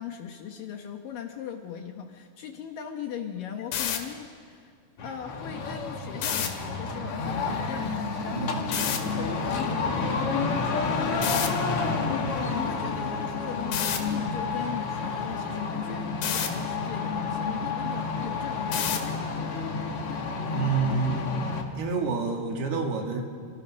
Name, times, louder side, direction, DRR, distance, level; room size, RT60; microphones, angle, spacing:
voice 1, 0.0-4.7 5.0-19.3, left 8 dB, 65° left, 4 dB, 2.4 m, -39 dB
sound 1, 3.6-4.0 6.2-6.5 8.7-9.0 11.2-11.5 13.7-14.0 16.2-16.5 18.7-19.1, left 9 dB, 90° left, 4.1 m, -28 dB
sound 2, 5.0-21.6, left 4 dB, 45° left, 2.2 m, -30 dB
voice 2, 8.3-8.7 20.5-21.3 21.8-23.2, right 5 dB, 65° right, 2 dB, 4.1 m, -28 dB
28.0 x 27.5 x 6.4 m, 2.1 s
omnidirectional pair, 5.0 m